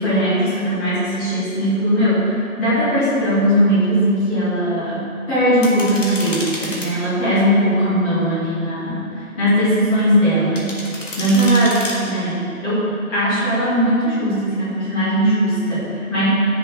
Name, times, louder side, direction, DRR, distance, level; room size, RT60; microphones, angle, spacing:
voice 1, 0.0-9.1 9.4-10.8 11.2-16.2, equal, 10° left, -12 dB, 2.1 m, -19 dB
sound 1, 5.6-6.9 10.6-11.9, left 1 dB, 60° left, 2.1 m, -29 dB
9.2 x 7.2 x 4.5 m, 2.5 s
figure-of-eight pair, 165°, 43 cm